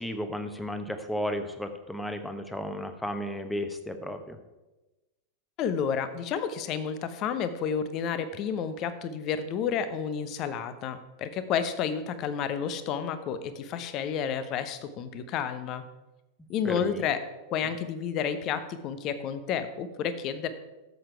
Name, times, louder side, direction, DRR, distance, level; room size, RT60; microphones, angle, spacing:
voice 1, 0.0-4.4 16.6-17.1, equal, 5° left, 8 dB, 1.1 m, -34 dB
voice 2, 5.6-15.8 16.5-17.2 17.5-20.5, left 7 dB, 35° left, 11 dB, 0.9 m, -31 dB
13.0 x 7.7 x 4.6 m, 1.1 s
figure-of-eight pair, 90°, 0 cm